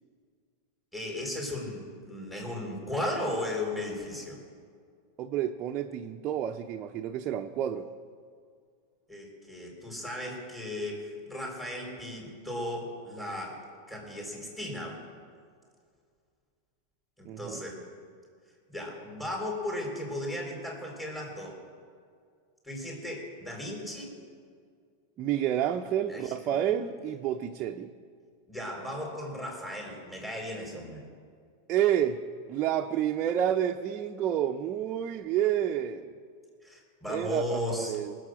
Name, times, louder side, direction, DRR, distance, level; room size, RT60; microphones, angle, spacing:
voice 1, 0.9-4.4 9.1-13.6 13.9-15.0 17.2-17.8 18.7-21.6 22.6-24.2 26.1-26.5 28.5-31.0 36.6-38.0, left 1 dB, 5° left, -2 dB, 4.2 m, -36 dB
voice 2, 5.2-7.9 17.2-17.6 25.2-27.9 31.7-32.2 32.5-36.1 37.1-38.2, right 10 dB, 40° right, 3 dB, 0.6 m, -29 dB
19.5 x 7.7 x 6.3 m, 2.1 s
hypercardioid pair, 115°, 0 cm